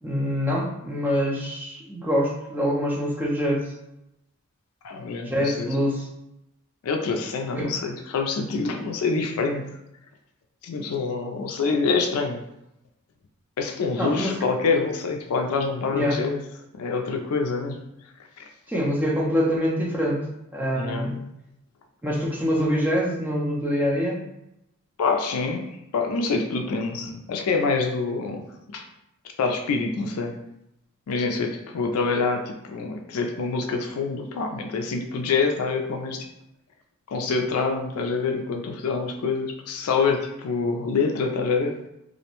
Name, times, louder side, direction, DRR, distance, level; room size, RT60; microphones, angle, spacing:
voice 1, 0.0-3.7 5.2-6.1 7.6-7.7 14.0-14.4 15.9-16.2 18.7-21.2 22.0-24.2, equal, 10° right, -3 dB, 0.5 m, -25 dB
voice 2, 4.8-5.7 6.8-9.6 10.6-12.4 13.6-16.4 16.7-17.8 18.4-18.5 20.8-21.1 25.0-28.9 29.4-30.4 31.1-36.3 37.1-41.8, left 4 dB, 70° left, 4 dB, 0.4 m, -26 dB
2.5 x 2.1 x 2.9 m, 0.84 s
head